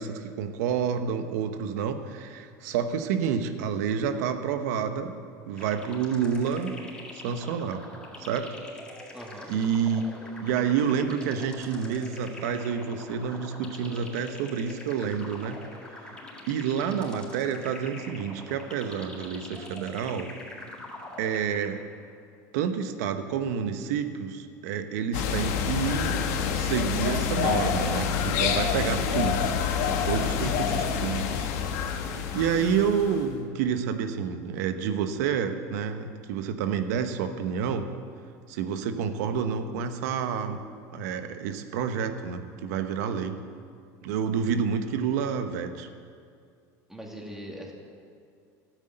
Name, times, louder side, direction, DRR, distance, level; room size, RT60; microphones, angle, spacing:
voice 1, 0.0-5.2 5.5-6.8 7.2-7.8 8.2-8.6 9.5-10.1 10.4-15.6 16.0-16.1 16.5-20.3 21.2-21.8 22.5-26.2 26.5-29.5 29.8-31.5 32.3-37.9 38.5-40.6 40.9-43.4 44.0-45.9, right 7 dB, 85° right, 9 dB, 1.0 m, -29 dB
sound 1, 5.6-22.0, left 1 dB, 10° left, 3.9 m, -44 dB
voice 2, 9.1-9.5 46.9-47.7, equal, 5° right, -1 dB, 2.6 m, -40 dB
sound 2, 25.1-33.3, left 7 dB, 80° left, 1.4 m, -27 dB
13.0 x 9.7 x 7.8 m, 2.3 s
supercardioid pair, 110°, 9 cm